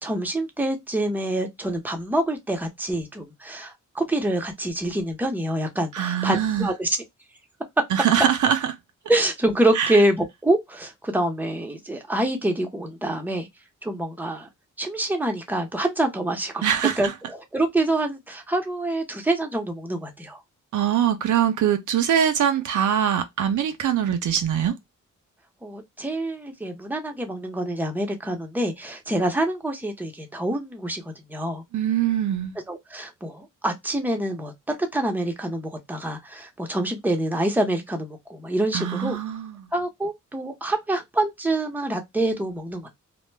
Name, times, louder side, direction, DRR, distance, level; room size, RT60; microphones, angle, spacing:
voice 1, 0.0-7.0 9.1-13.5 13.8-14.5 14.8-16.6 17.0-20.4 25.6-31.6 32.7-39.2 39.7-42.9, right 1 dB, 5° right, 0.7 m, -26 dB
voice 2, 5.9-6.7 7.9-8.7 9.8-10.0 16.6-17.0 20.7-24.7 31.7-32.5 38.7-39.7, right 9 dB, 70° right, 0.5 m, -23 dB
2.1 x 2.1 x 3.2 m
cardioid pair, 75°, 31 cm